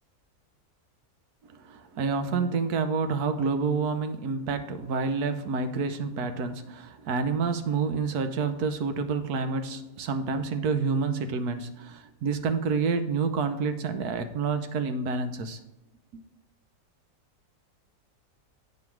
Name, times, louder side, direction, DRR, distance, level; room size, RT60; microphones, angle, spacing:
voice 1, 1.4-15.6 16.1-16.2, right 5 dB, 80° right, 8 dB, 1.3 m, -28 dB
9.3 x 5.5 x 4.6 m, 0.93 s
omnidirectional pair, 1.6 m